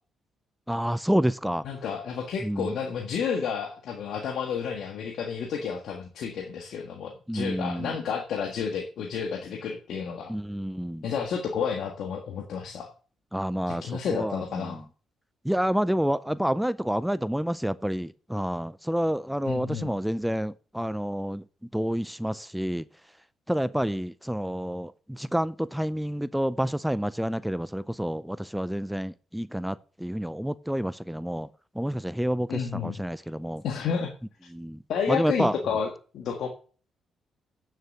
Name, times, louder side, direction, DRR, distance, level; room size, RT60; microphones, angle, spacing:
voice 1, 0.7-1.6 2.4-2.7 7.3-8.0 10.3-11.0 13.3-14.8 15.4-21.4 21.7-22.9 23.5-31.5 31.7-33.6 34.5-34.8 35.1-35.5, equal, 5° right, 0.4 m, -29 dB
voice 2, 1.6-10.3 11.0-12.9 13.7-14.8 19.5-19.9 32.5-33.0 33.6-34.1 34.9-36.5, left 6 dB, 70° left, 1.6 m, -31 dB
9.1 x 6.7 x 7.7 m
cardioid pair, 90°, 0 cm